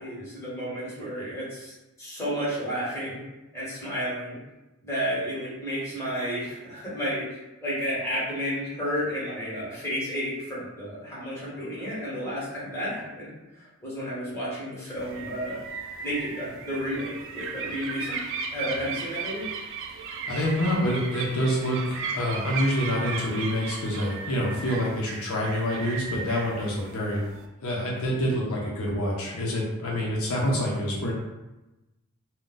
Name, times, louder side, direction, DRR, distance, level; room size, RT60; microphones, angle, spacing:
voice 1, 0.0-3.2 3.5-4.4 4.8-15.6 16.0-18.2 18.5-19.4, equal, 10° left, -9 dB, 1.2 m, -32 dB
sound 1, 15.0-27.5, right 5 dB, 60° right, 0.3 m, -36 dB
voice 2, 20.3-27.2 27.6-31.1, equal, 70° left, -3 dB, 0.6 m, -27 dB
2.4 x 2.1 x 3.8 m, 1.0 s
head